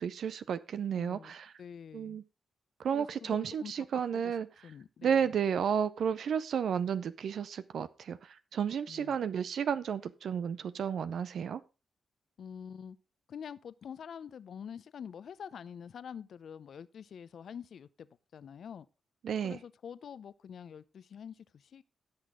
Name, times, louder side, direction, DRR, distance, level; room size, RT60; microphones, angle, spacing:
voice 1, 0.0-1.5 1.9-2.2 2.8-4.5 5.0-11.6 19.2-19.6, right 7 dB, 70° right, 0.5 m, -32 dB
voice 2, 0.9-1.3 1.6-2.2 2.9-3.9 4.1-4.3 4.6-5.3 8.9-9.2 12.4-13.0 13.3-18.9 19.4-21.8, left 7 dB, 65° left, 0.6 m, -46 dB
16.0 x 6.1 x 3.7 m
hypercardioid pair, 40°, 0 cm